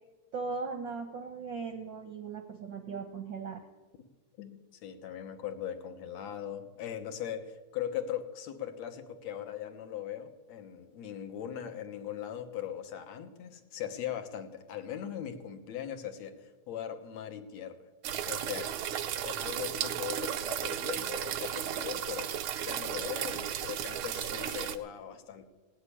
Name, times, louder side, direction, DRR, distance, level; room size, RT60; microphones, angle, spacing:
voice 1, 0.3-3.6, right 4 dB, 65° right, 5 dB, 1.2 m, -38 dB
voice 2, 4.4-17.8 18.3-18.7 19.2-22.3 22.6-25.5, left 10 dB, 70° left, 6 dB, 2.3 m, -40 dB
sound 1, 18.0-24.8, right 10 dB, 90° right, 1.1 m, -34 dB
18.0 x 7.4 x 9.9 m, 1.3 s
omnidirectional pair, 3.3 m